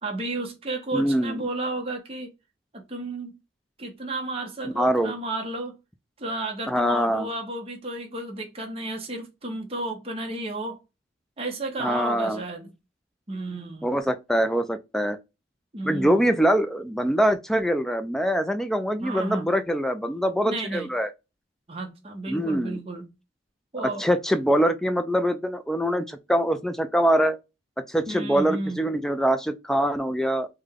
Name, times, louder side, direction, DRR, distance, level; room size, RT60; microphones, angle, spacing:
voice 1, 0.0-2.3 2.7-3.4 3.8-5.8 6.2-10.8 11.4-12.7 13.3-13.9 15.7-16.2 19.0-19.5 20.4-20.9 21.7-23.1 23.7-24.0 28.1-28.8, right 2 dB, 30° right, 0.8 m, -32 dB
voice 2, 0.9-1.4 4.6-5.1 6.7-7.3 11.8-12.4 13.8-15.2 15.8-21.1 22.3-22.8 23.8-27.4 27.9-30.5, equal, ahead, 0.3 m, -24 dB
3.4 x 2.2 x 3.5 m
head